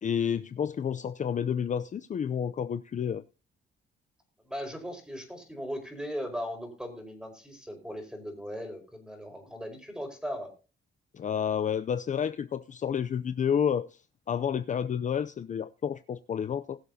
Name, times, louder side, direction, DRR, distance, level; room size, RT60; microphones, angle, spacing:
voice 1, 0.0-3.2 11.1-14.0 14.3-16.8, left 8 dB, 40° left, 0.5 m, -30 dB
voice 2, 4.4-10.5, equal, 5° right, 4.9 m, -38 dB
20.5 x 7.2 x 2.8 m
cardioid pair, 90°, 20 cm